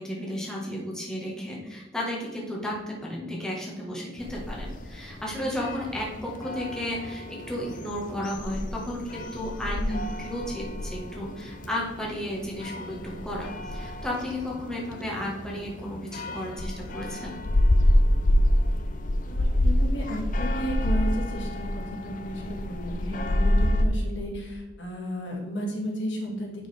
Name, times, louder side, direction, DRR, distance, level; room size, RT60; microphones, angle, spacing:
voice 1, 0.0-9.8 10.2-17.3, left 1 dB, 5° left, -4 dB, 1.5 m, -33 dB
sound 1, 4.2-23.9, left 1 dB, 45° left, 0.5 m, -28 dB
voice 2, 9.7-10.1 19.3-26.5, equal, 80° left, 0 dB, 2.0 m, -33 dB
10.5 x 5.0 x 3.5 m, 1.3 s
head